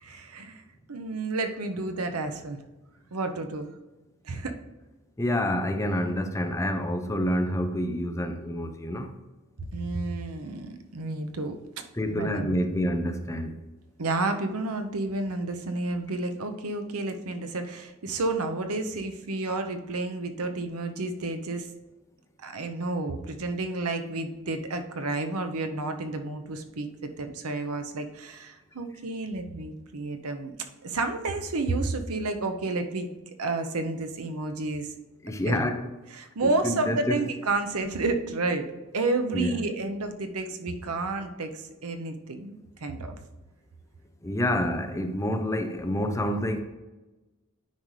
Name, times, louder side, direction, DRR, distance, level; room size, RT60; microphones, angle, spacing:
voice 1, 0.0-0.6 0.9-2.6 3.1-3.7 4.2-4.5 9.7-11.6 12.1-12.7 14.0-21.7 22.4-30.5 30.8-33.1 33.4-34.9 35.4-35.7 36.1-38.6 38.9-43.2 44.5-44.6, right 2 dB, 85° right, 7 dB, 0.8 m, -31 dB
voice 2, 5.2-9.1 12.0-13.5 35.2-35.8 36.4-37.2 39.3-39.6 44.2-46.6, left 1 dB, 15° left, 6 dB, 0.5 m, -28 dB
9.4 x 5.3 x 3.2 m, 1.1 s
head